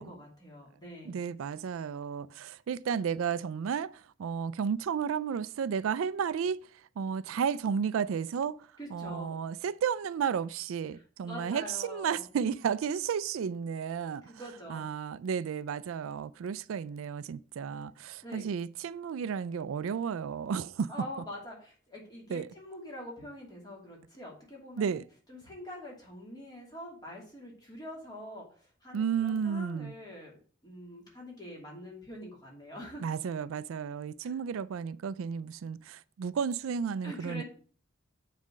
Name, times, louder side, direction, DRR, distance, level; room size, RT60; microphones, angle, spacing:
voice 1, 0.0-1.2 8.8-9.4 10.9-12.3 14.2-14.8 18.2-18.5 20.9-25.0 25.3-30.3 30.6-33.1 34.2-34.4 37.0-37.4, equal, 20° left, 2.6 m, -45 dB
voice 2, 1.0-6.6 7.0-14.3 14.7-20.9 22.3-22.5 24.8-25.0 28.9-29.9 33.0-37.4, right 7 dB, 85° right, 0.4 m, -33 dB
7.4 x 4.2 x 6.3 m
head